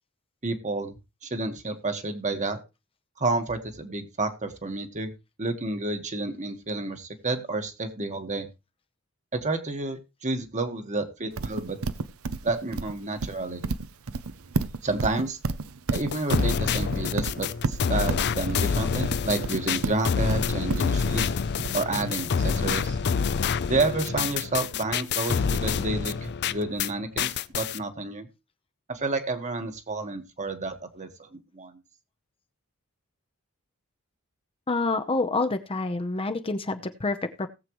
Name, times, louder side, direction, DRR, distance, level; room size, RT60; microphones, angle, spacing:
voice 1, 0.4-0.9 1.2-2.6 3.2-5.1 5.4-8.5 9.3-11.8 12.4-13.6 14.8-15.4 15.9-21.3 21.7-23.0 23.7-28.3 28.9-31.3 31.5-31.7, right 2 dB, 35° right, 7 dB, 1.5 m, -30 dB
Livestock farm animals working animals, 11.4-22.2, right 3 dB, 85° right, 0.8 m, -31 dB
sound 1, 15.9-26.9 27.2-27.8, left 6 dB, 50° left, 0.5 m, -27 dB
voice 2, 34.7-37.5, left 3 dB, 25° left, 8 dB, 0.8 m, -27 dB
18.5 x 7.6 x 3.1 m, 0.27 s
head